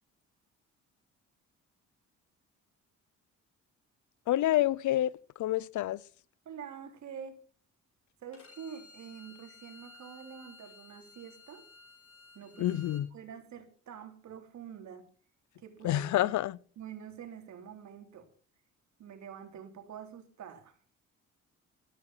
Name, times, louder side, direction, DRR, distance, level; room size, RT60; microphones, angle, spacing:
voice 1, 4.3-5.1 5.4-6.0 12.6-13.1 15.8-16.6, left 14 dB, 75° left, 0.7 m, -28 dB
voice 2, 6.5-7.4 8.2-11.7 12.3-12.8 13.1-15.1 15.6-16.3 16.8-18.3 19.0-20.8, right 8 dB, 65° right, 3.5 m, -46 dB
Bowed string instrument, 8.3-13.0, left 4 dB, 50° left, 5.0 m, -55 dB
14.0 x 13.5 x 5.8 m
cardioid pair, 90°, 30 cm